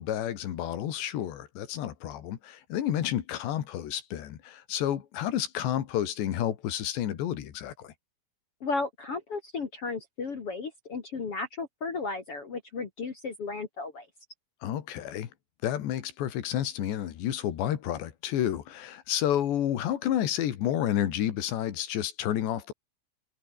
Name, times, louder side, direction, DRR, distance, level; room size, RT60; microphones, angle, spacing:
voice 1, 0.0-7.9 14.6-15.3 15.6-22.7, left 11 dB, 85° left, 4.3 m, -30 dB
voice 2, 8.6-14.1, left 4 dB, 40° left, 2.6 m, -34 dB
omnidirectional pair, 4.9 m